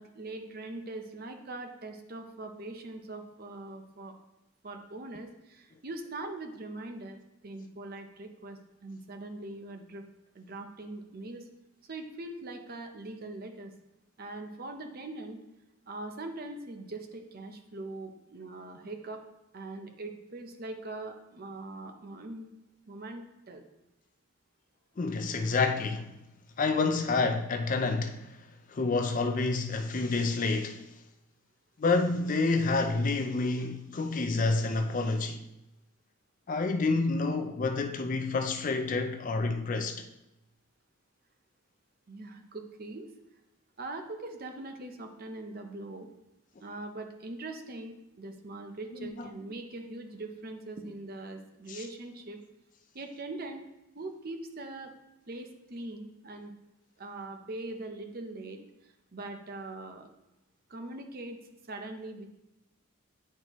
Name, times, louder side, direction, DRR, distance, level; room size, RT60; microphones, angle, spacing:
voice 1, 0.0-4.1 4.6-7.2 7.4-10.0 10.3-11.5 11.8-13.7 14.2-15.4 15.9-19.2 19.5-22.5 22.9-23.6 42.1-43.1 43.8-46.1 46.6-52.4 52.9-53.7 53.9-54.9 55.3-56.5 57.0-60.1 60.7-61.4 61.7-62.3, right 2 dB, 45° right, 0.7 m, -42 dB
voice 2, 25.0-26.1 26.6-28.4 28.7-30.9 31.8-35.4 36.5-40.0 49.0-49.3 51.7-51.8, left 3 dB, 40° left, 0.4 m, -28 dB
9.3 x 4.4 x 3.0 m
head